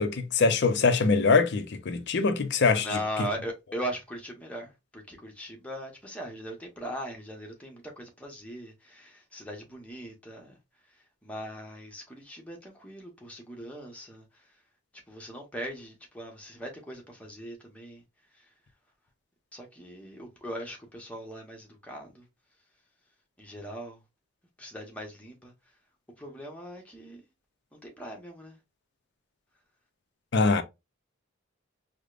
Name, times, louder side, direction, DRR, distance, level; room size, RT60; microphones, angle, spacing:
voice 1, 0.0-3.3 30.3-30.6, left 4 dB, 55° left, 0.5 m, -23 dB
voice 2, 2.8-10.5 11.2-14.2 15.1-18.0 19.5-22.2 23.4-24.0 24.6-25.5 26.2-27.2 27.7-28.6, equal, 5° left, 0.8 m, -39 dB
4.9 x 2.1 x 2.4 m
head